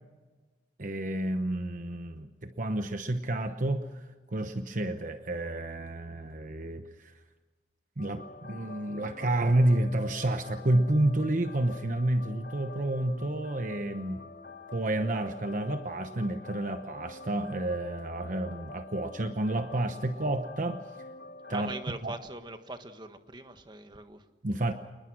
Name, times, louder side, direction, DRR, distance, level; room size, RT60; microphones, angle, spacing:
voice 1, 0.8-7.1 8.0-14.2 14.7-20.8 21.5-21.7 22.0-22.1 24.4-24.7, right 1 dB, 45° right, 8 dB, 1.0 m, -30 dB
sound 1, 8.0-21.9, left 3 dB, 65° left, 3.3 m, -47 dB
voice 2, 21.5-24.3, right 2 dB, 25° right, 8 dB, 1.5 m, -41 dB
28.5 x 20.5 x 6.2 m, 1.3 s
head